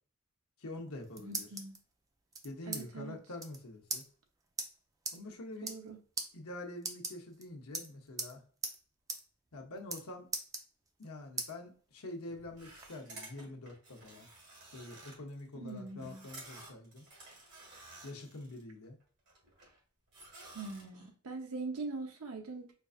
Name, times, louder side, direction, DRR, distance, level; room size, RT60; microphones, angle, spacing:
voice 1, 0.6-1.5 2.4-4.0 5.1-5.7 6.3-8.4 9.5-10.3 11.0-14.3 14.7-17.0 18.0-19.0, left 2 dB, 75° left, 0.8 m, -46 dB
sound 1, 0.8-1.8 2.3-2.8 3.1-3.2 3.4-3.6 3.9-4.0 4.6-4.7 5.1-5.2 5.5-5.9 6.2-6.3 6.8-7.4 7.7-8.3 8.6-8.8 9.1-9.2 9.5-10.0 10.3-11.0 11.4-11.5 12.0-12.9, right 3 dB, 15° right, 0.4 m, -39 dB
voice 2, 1.2-1.8 2.7-3.2 5.6-6.0 15.5-16.2 20.5-22.7, right 3 dB, 80° right, 0.8 m, -42 dB
sound 2, 12.6-18.6 19.0-19.8 20.1-21.1, right 2 dB, 55° right, 1.7 m, -53 dB
4.5 x 2.5 x 2.4 m
head